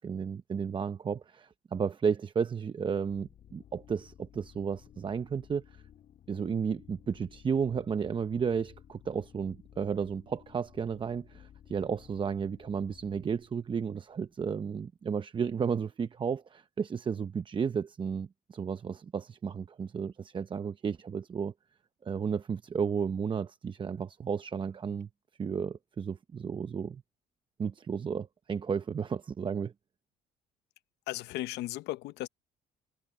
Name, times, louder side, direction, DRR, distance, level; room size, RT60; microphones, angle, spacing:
voice 1, 0.0-5.6 6.3-21.5 22.0-25.1 25.4-27.0 27.6-29.7, right 6 dB, 30° right, 0.7 m, -33 dB
sound 1, 2.9-14.7, left 10 dB, 55° left, 3.3 m, -56 dB
voice 2, 31.1-32.3, left 16 dB, 85° left, 0.8 m, -36 dB
cardioid pair, 110°, 17 cm